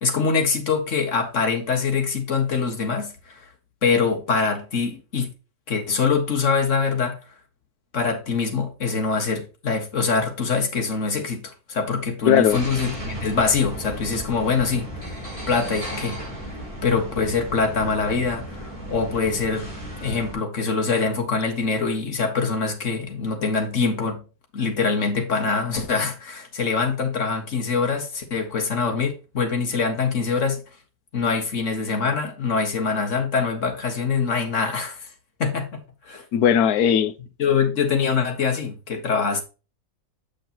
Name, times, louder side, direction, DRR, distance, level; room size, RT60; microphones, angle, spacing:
voice 1, 0.0-3.5 3.8-5.3 5.7-7.2 7.9-16.2 16.8-19.7 20.0-24.2 24.5-30.6 31.1-35.1 35.4-35.7 36.1-36.3 37.4-39.4, left 5 dB, 55° left, 1.9 m, -24 dB
voice 2, 12.3-12.6 36.3-37.1, left 9 dB, 80° left, 1.2 m, -18 dB
sound 1, 12.5-20.3, right 1 dB, 20° right, 4.7 m, -35 dB
7.7 x 6.4 x 2.9 m
omnidirectional pair, 1.6 m